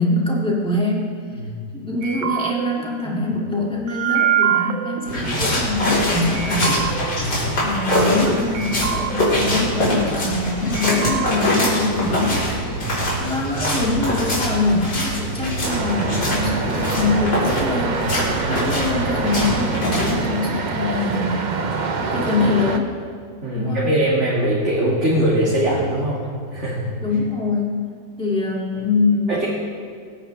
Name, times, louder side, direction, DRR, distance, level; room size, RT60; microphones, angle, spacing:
voice 1, 0.0-1.2 1.7-6.8 7.6-12.8 13.2-21.5 22.0-22.9 23.5-23.9 27.0-27.9 28.2-29.5, left 3 dB, 5° left, -4 dB, 2.4 m, -24 dB
sound 1, 2.0-6.0 6.3-8.3 8.5-10.5 10.7-11.3, right 10 dB, 85° right, 1.5 m, -26 dB
sound 2, 5.1-20.2, equal, 90° left, 4.5 m, -23 dB
sound 3, 15.6-22.8, right 4 dB, 65° right, 0.4 m, -25 dB
voice 2, 23.4-26.2 26.5-26.9 28.8-28.9 29.3-29.5, right 1 dB, 40° right, -7 dB, 2.4 m, -21 dB
24.0 x 9.7 x 3.4 m, 2.1 s
omnidirectional pair, 1.9 m